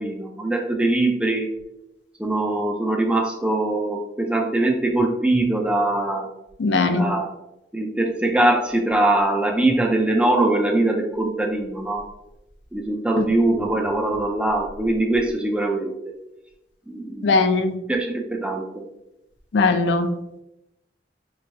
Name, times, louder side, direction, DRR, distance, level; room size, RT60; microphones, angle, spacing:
voice 1, 0.0-1.5 2.2-6.3 6.9-7.3 7.7-12.0 12.7-15.9 16.9-17.4 17.9-18.6, right 2 dB, 5° right, 2 dB, 0.3 m, -22 dB
voice 2, 6.6-7.1 13.2-13.3 17.2-17.8 19.5-20.1, left 3 dB, 90° left, 8 dB, 0.4 m, -19 dB
3.4 x 3.1 x 2.7 m, 0.89 s
head